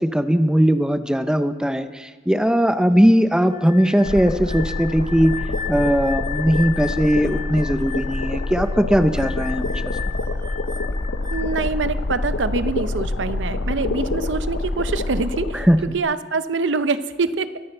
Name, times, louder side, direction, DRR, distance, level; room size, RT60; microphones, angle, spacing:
voice 1, 0.0-5.3 5.7-9.9 15.5-15.8, equal, 5° right, 10 dB, 0.5 m, -19 dB
sound 1, 3.5-11.7, left 8 dB, 25° right, 1.3 m, -35 dB
sound 2, 4.0-16.0, left 2 dB, 75° left, 0.8 m, -26 dB
voice 2, 11.3-15.7 15.9-17.6, right 4 dB, 80° right, 13 dB, 0.6 m, -25 dB
23.0 x 9.9 x 4.4 m, 1.3 s
head